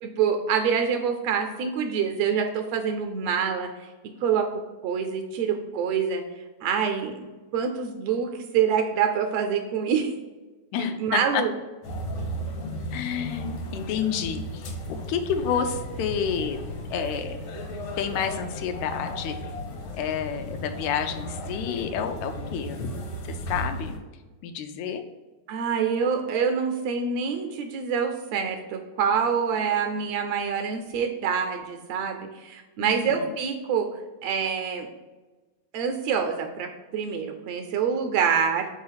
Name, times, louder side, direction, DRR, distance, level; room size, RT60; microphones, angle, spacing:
voice 1, 0.0-3.9 4.2-4.5 4.8-6.2 6.6-10.1 10.8-11.5 25.5-33.9 34.2-34.9 35.7-38.7, right 7 dB, 75° right, 6 dB, 1.6 m, -26 dB
voice 2, 10.7-11.4 12.9-16.6 16.9-17.5 18.0-19.4 19.9-22.9 23.2-24.0 24.4-25.1 32.8-33.3, left 7 dB, 85° left, 7 dB, 2.0 m, -29 dB
sound 1, 11.8-24.0, equal, 65° left, 2.3 m, -35 dB
4.7 x 4.3 x 5.6 m, 1.2 s
omnidirectional pair, 3.3 m